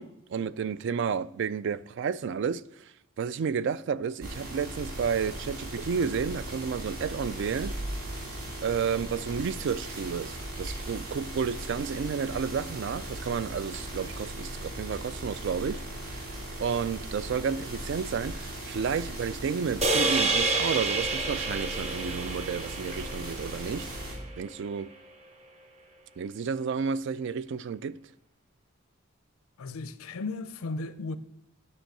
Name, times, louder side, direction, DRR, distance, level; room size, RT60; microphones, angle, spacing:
voice 1, 0.0-2.6 3.2-7.7 8.6-15.8 16.1-16.2 16.6-23.9 24.4-24.9 26.2-28.0, right 6 dB, 60° right, 0.3 m, -31 dB
sound 1, 4.2-24.2, right 1 dB, 80° right, 2.7 m, -38 dB
sound 2, 19.8-24.2, right 3 dB, 30° right, 0.7 m, -29 dB
voice 2, 29.6-31.2, left 3 dB, 85° left, 0.5 m, -35 dB
9.1 x 5.4 x 6.5 m
head